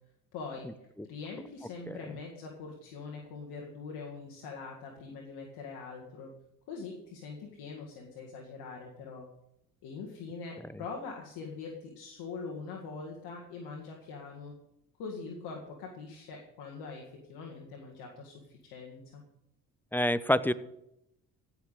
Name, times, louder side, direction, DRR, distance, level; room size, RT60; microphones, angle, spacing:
voice 1, 0.3-0.7 1.0-6.3 6.7-9.3 9.8-14.5 15.0-19.2, left 4 dB, 75° left, 0 dB, 2.0 m, -43 dB
voice 2, 19.9-20.5, left 1 dB, 5° left, 16 dB, 0.8 m, -27 dB
16.0 x 5.9 x 8.4 m, 0.83 s
hypercardioid pair, 55°, 39 cm